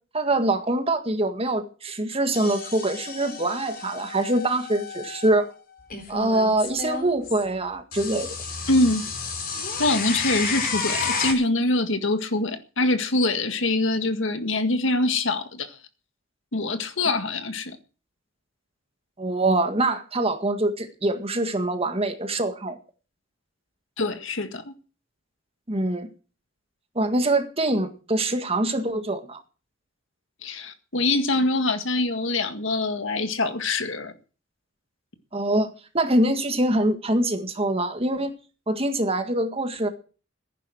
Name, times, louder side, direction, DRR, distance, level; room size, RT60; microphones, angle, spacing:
voice 1, 0.1-5.5 6.1-8.3 19.2-22.8 25.7-26.1 26.9-29.4 35.3-38.3 38.7-39.9, right 1 dB, 30° right, 1.9 m, -24 dB
sound 1, 2.3-5.3 5.9-7.4 7.9-11.3, left 4 dB, 50° left, 4.3 m, -31 dB
voice 2, 8.7-9.0 9.8-15.7 16.5-17.8 24.0-24.7 30.4-34.1, left 2 dB, 70° left, 1.8 m, -24 dB
15.0 x 10.5 x 6.2 m
head